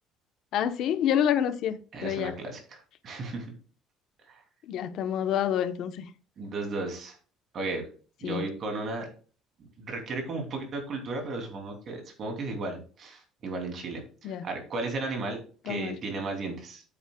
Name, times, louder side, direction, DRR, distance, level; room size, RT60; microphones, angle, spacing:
voice 1, 0.5-2.3 4.7-6.0 8.2-8.4 14.2-14.4 15.7-16.0, left 9 dB, 55° left, 0.9 m, -28 dB
voice 2, 1.9-3.5 4.3-4.4 6.4-7.2 7.5-7.9 8.2-9.1 9.8-15.4 15.6-16.8, right 3 dB, 35° right, 2.9 m, -35 dB
9.4 x 8.7 x 2.3 m
cardioid pair, 160°, 0 cm